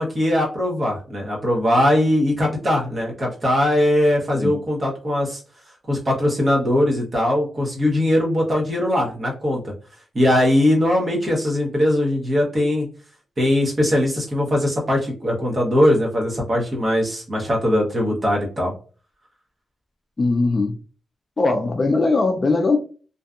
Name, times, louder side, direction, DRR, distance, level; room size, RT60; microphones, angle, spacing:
voice 1, 0.0-5.4 5.9-9.7 10.1-12.9 13.4-18.7, left 1 dB, 30° right, 0.9 m, -20 dB
voice 2, 20.2-20.7 21.4-22.8, left 3 dB, 30° left, 0.3 m, -20 dB
2.6 x 2.3 x 2.3 m
wide cardioid pair, 145°, 0 cm